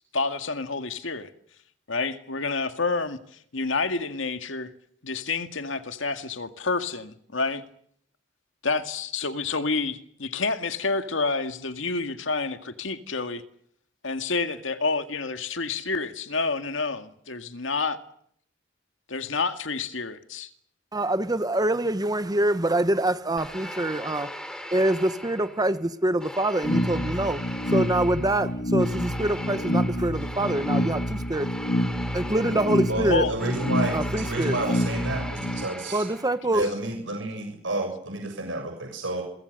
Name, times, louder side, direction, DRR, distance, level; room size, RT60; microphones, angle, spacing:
voice 1, 0.1-1.3 1.9-3.2 3.5-4.7 5.0-7.6 8.6-13.4 14.0-18.0 19.1-20.5 33.1-33.3, left 4 dB, 80° left, 2.1 m, -28 dB
voice 2, 20.9-24.3 24.7-27.4 27.7-31.5 32.1-33.3 33.9-34.6 35.9-36.7, right 1 dB, 20° right, 1.0 m, -25 dB
sound 1, 23.4-25.8 26.2-36.5, equal, 5° left, 3.8 m, -39 dB
sound 2, 26.6-35.6, left 1 dB, 60° left, 2.3 m, -28 dB
voice 3, 32.9-34.0 34.2-36.0 36.5-39.2, right 2 dB, 75° right, 7.1 m, -30 dB
28.5 x 23.5 x 6.7 m
head